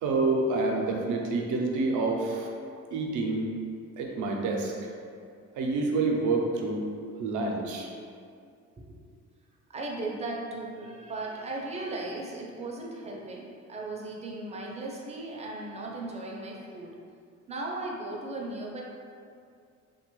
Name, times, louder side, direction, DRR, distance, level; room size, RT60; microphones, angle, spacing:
voice 1, 0.0-2.5 2.9-3.5 4.0-4.9 5.6-6.8 7.2-7.9, right 3 dB, 80° right, 1 dB, 0.5 m, -28 dB
voice 2, 9.7-17.0 17.5-18.8, right 2 dB, 20° right, -2 dB, 0.5 m, -37 dB
2.9 x 2.2 x 3.0 m, 2.3 s
cardioid pair, 90°, 30 cm